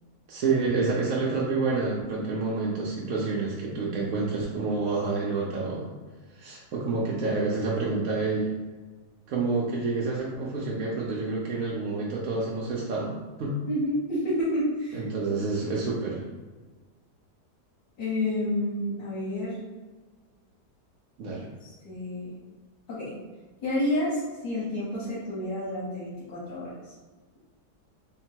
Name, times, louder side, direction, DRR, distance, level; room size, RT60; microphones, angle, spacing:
voice 1, 0.3-5.9 6.3-8.5 9.3-13.1 13.4-13.6 14.9-16.2 21.2-21.5, right 3 dB, 65° right, -5 dB, 0.9 m, -28 dB
voice 2, 13.7-15.0 15.5-15.7 18.0-19.6 21.6-22.3 22.9-23.1 23.6-26.9, left 1 dB, 90° left, -9 dB, 1.6 m, -29 dB
3.5 x 2.2 x 4.4 m, 1.3 s
omnidirectional pair, 1.8 m